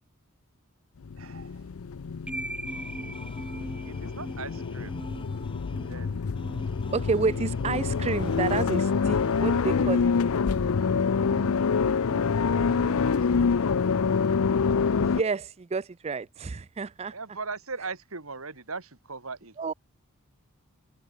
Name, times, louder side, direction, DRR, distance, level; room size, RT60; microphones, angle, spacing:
sound 1, 1.0-15.2, left 5 dB, 80° left, 0.5 m, -26 dB
voice 1, 1.2-1.7 3.8-5.0 5.9-6.2 12.6-13.6 17.1-19.7, right 4 dB, 75° right, 2.6 m, -40 dB
sound 2, 2.3-14.3, right 1 dB, 5° right, 1.2 m, -42 dB
sound 3, 2.7-10.0, left 2 dB, 25° left, 3.9 m, -49 dB
voice 2, 6.9-10.1 15.0-17.1 19.6-19.7, right 4 dB, 30° right, 0.4 m, -30 dB
head